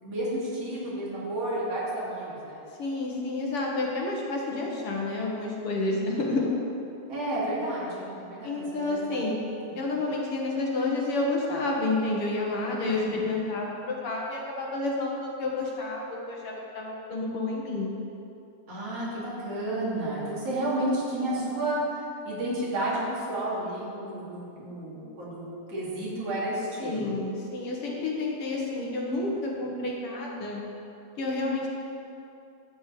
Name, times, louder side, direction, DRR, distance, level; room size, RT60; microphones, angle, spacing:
voice 1, 0.0-2.6 5.9-6.4 7.1-9.2 9.7-10.0 12.8-13.3 18.7-27.2, right 1 dB, 55° right, -7 dB, 3.8 m, -32 dB
voice 2, 2.8-6.5 8.4-9.4 9.8-17.9 26.8-30.6 31.2-31.7, left 2 dB, 55° left, -2 dB, 2.1 m, -30 dB
12.5 x 5.5 x 8.4 m, 2.7 s
omnidirectional pair, 3.3 m